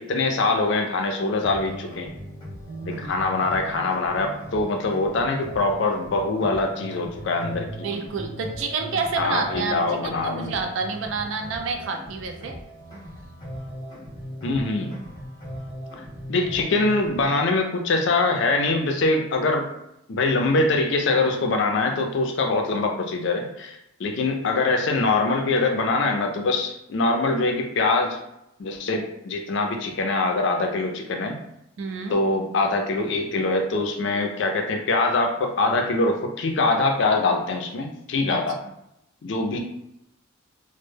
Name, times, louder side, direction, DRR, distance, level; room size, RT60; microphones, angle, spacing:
voice 1, 0.0-2.1 2.9-8.0 9.2-10.5 14.4-14.9 16.3-19.7 20.1-28.2 28.6-31.4 32.1-38.6 39.2-39.6, left 3 dB, 55° left, 3 dB, 0.4 m, -23 dB
sound 1, 1.4-17.4, equal, 20° left, 0.7 m, -39 dB
voice 2, 2.7-3.3 7.8-12.6 31.8-32.2 38.3-38.4, right 4 dB, 65° right, 4 dB, 0.4 m, -29 dB
2.1 x 2.0 x 3.2 m, 0.81 s
head